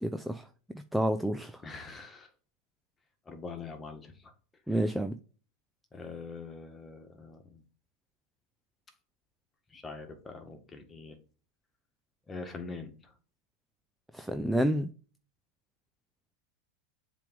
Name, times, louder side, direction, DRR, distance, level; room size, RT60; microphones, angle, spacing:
voice 1, 0.0-0.5 0.9-1.6 4.7-5.2 14.1-14.9, equal, ahead, 0.5 m, -29 dB
voice 2, 1.6-2.3 3.2-4.3 4.7-4.9 5.9-7.6 9.7-11.2 12.3-13.1, left 4 dB, 20° left, 1.6 m, -44 dB
7.5 x 3.5 x 5.2 m
hypercardioid pair, 100°, 0 cm